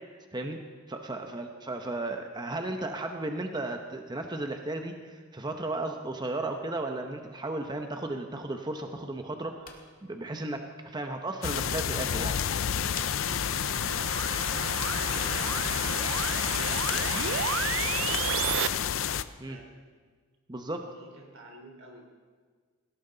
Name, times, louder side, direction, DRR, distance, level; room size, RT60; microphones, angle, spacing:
voice 1, 0.9-12.3 19.4-19.6 20.5-20.9, right 2 dB, 20° right, 4 dB, 0.9 m, -35 dB
sound 1, 9.3-17.3, left 6 dB, 45° left, 1.9 m, -53 dB
sound 2, 11.4-19.2, left 9 dB, 75° left, 0.5 m, -29 dB
sound 3, 12.2-18.7, right 8 dB, 70° right, 0.5 m, -33 dB
voice 2, 14.2-18.6 19.4-19.8 20.9-22.1, right 1 dB, 90° right, 1 dB, 3.7 m, -53 dB
18.0 x 17.0 x 3.9 m, 1.5 s
head